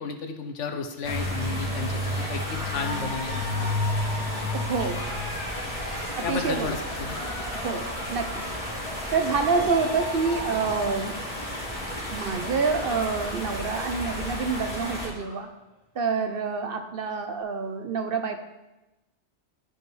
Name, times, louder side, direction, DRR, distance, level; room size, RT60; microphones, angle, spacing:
voice 1, 0.0-3.4 6.2-7.2, left 4 dB, 90° left, 5 dB, 1.2 m, -33 dB
sound 1, 1.0-15.1, left 1 dB, 30° left, 2.6 m, -32 dB
Cheering, 2.0-13.3 13.6-14.0 14.4-14.5 14.7-15.5, left 1 dB, 75° left, 2.9 m, -40 dB
voice 2, 4.5-5.0 6.2-6.7 7.6-8.4 9.1-11.2 12.1-15.5 15.9-18.4, right 5 dB, 55° right, 6 dB, 0.8 m, -27 dB
12.5 x 4.8 x 3.3 m, 0.99 s
omnidirectional pair, 1.2 m